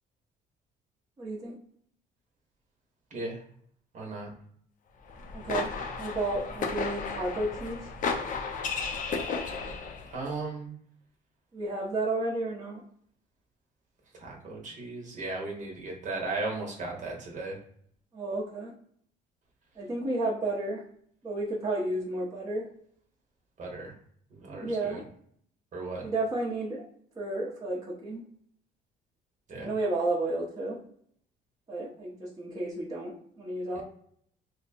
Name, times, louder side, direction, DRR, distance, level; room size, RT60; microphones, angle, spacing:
voice 1, 1.2-1.5 5.3-7.9 11.5-12.8 18.1-18.7 19.8-20.8 21.2-22.6 24.5-25.0 26.0-26.8 27.2-28.2 29.6-30.8 31.7-33.8, right 2 dB, 20° right, -5 dB, 1.0 m, -32 dB
voice 2, 3.9-4.3 10.1-10.7 14.1-17.6 23.6-23.9 24.3-25.0 25.7-26.0 29.5-29.7 33.7-33.8, right 3 dB, 45° right, 0 dB, 1.2 m, -36 dB
sound 1, 5.1-10.1, left 5 dB, 50° left, 0.6 m, -34 dB
2.8 x 2.3 x 4.2 m, 0.62 s
cardioid pair, 110°, 17 cm